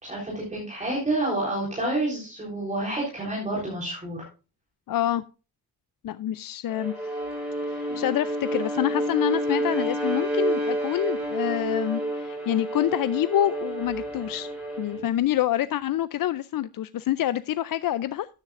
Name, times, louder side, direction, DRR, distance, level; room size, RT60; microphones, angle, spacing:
voice 1, 0.0-4.2 7.9-8.0, right 2 dB, 20° right, -5 dB, 3.8 m, -29 dB
voice 2, 4.9-5.2 6.0-6.9 7.7-14.5 14.8-18.3, left 12 dB, 70° left, 14 dB, 0.5 m, -26 dB
Bowed string instrument, 6.7-15.1, right 1 dB, ahead, 6.0 m, -29 dB
13.0 x 9.7 x 2.5 m, 0.33 s
wide cardioid pair, 165°, 36 cm